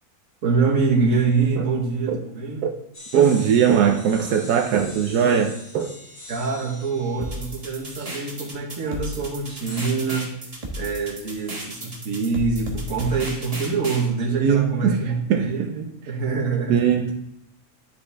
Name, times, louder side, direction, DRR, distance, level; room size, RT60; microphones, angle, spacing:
voice 1, 0.4-2.6 6.3-10.3 10.8-17.0, right 4 dB, 60° right, 0 dB, 1.7 m, -25 dB
sound 1, 2.9-8.6 9.7-9.9, left 1 dB, 90° left, 3.0 m, -43 dB
voice 2, 3.1-5.9 8.0-8.1 14.4-15.0 15.3-15.7 16.7-17.1, right 8 dB, 85° right, 3 dB, 1.2 m, -20 dB
sound 2, 7.2-14.1, right 1 dB, 25° right, 1.3 m, -34 dB
10.5 x 5.0 x 3.4 m, 0.84 s
omnidirectional pair, 1.6 m